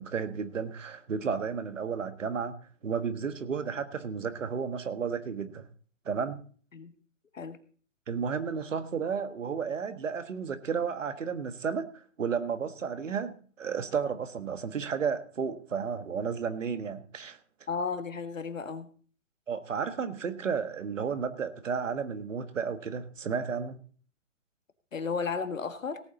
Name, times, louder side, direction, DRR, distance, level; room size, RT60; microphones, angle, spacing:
voice 1, 0.0-5.7 6.0-6.4 8.1-17.4 19.5-23.8, right 6 dB, 75° right, 10 dB, 1.6 m, -33 dB
voice 2, 17.7-18.9 24.9-26.0, left 5 dB, 90° left, 9 dB, 1.8 m, -33 dB
17.5 x 8.7 x 4.0 m, 0.43 s
hypercardioid pair, 145°, 38 cm